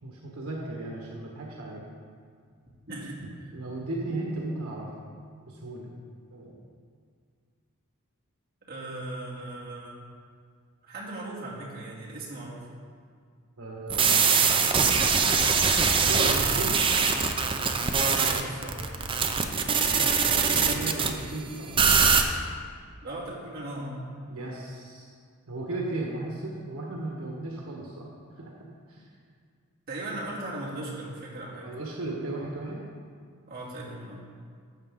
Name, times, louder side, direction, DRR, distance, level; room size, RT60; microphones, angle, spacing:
voice 1, 0.0-1.8 3.5-4.9 5.5-5.9 6.3-6.6 13.6-14.7 15.9-16.8 18.3-18.5 19.6-21.7 24.3-25.1 25.5-28.1 28.3-29.0 31.6-32.9, right 2 dB, 85° right, -2 dB, 1.4 m, -36 dB
voice 2, 2.9-3.2 8.7-10.0 10.8-12.6 18.0-18.9 23.0-24.0 29.9-31.7 33.5-34.2, right 1 dB, 45° right, -7 dB, 2.6 m, -38 dB
sound 1, 13.9-21.1 21.8-22.2, right 5 dB, 25° right, 0.6 m, -23 dB
13.0 x 7.5 x 3.7 m, 2.1 s
head